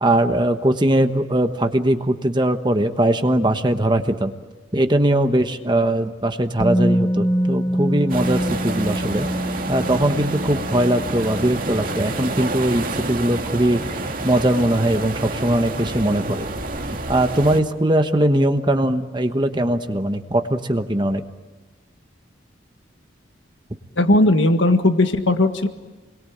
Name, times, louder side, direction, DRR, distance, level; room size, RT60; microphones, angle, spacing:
voice 1, 0.0-4.3 4.7-9.3 9.7-13.8 14.2-16.5 17.1-21.2, right 1 dB, 25° right, 7 dB, 1.2 m, -20 dB
Musical instrument, 6.6-14.5 14.8-14.9, equal, 20° left, 1.1 m, -26 dB
sound 1, 8.1-17.6, right 2 dB, 45° right, 2.2 m, -29 dB
voice 2, 24.0-25.7, left 1 dB, 75° left, 7 dB, 1.8 m, -17 dB
29.0 x 22.0 x 8.8 m, 1.2 s
head